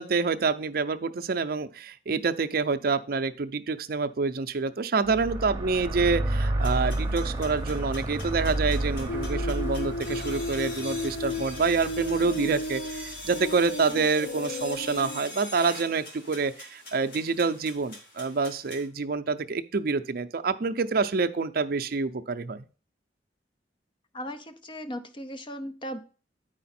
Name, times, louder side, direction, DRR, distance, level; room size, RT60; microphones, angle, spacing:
voice 1, 0.0-22.7, right 4 dB, 55° right, 9 dB, 0.5 m, -27 dB
sound 1, 5.1-13.4, right 1 dB, 20° right, 0.9 m, -31 dB
sound 2, 6.6-18.9, left 1 dB, 55° left, 2.2 m, -44 dB
sound 3, 9.1-15.2, left 1 dB, 85° left, 0.6 m, -34 dB
voice 2, 24.1-26.0, equal, 30° left, 9 dB, 0.7 m, -37 dB
9.2 x 4.9 x 4.2 m, 0.37 s
head